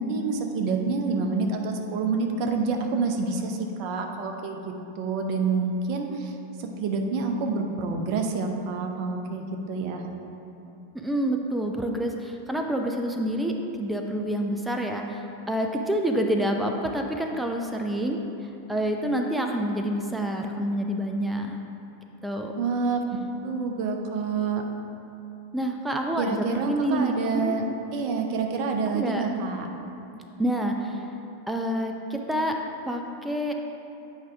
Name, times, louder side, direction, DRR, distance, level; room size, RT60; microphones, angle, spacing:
voice 1, 0.0-6.3 6.6-10.0 22.6-23.0 23.4-24.6 26.2-27.6 27.9-29.7, right 4 dB, 45° right, 3 dB, 0.7 m, -27 dB
voice 2, 10.9-21.6 22.2-22.5 25.5-27.6 28.9-29.2 30.4-31.1 31.5-32.6 32.9-33.5, equal, 5° right, 3 dB, 0.5 m, -28 dB
8.8 x 4.9 x 3.4 m, 2.9 s
figure-of-eight pair, 90°, 0 cm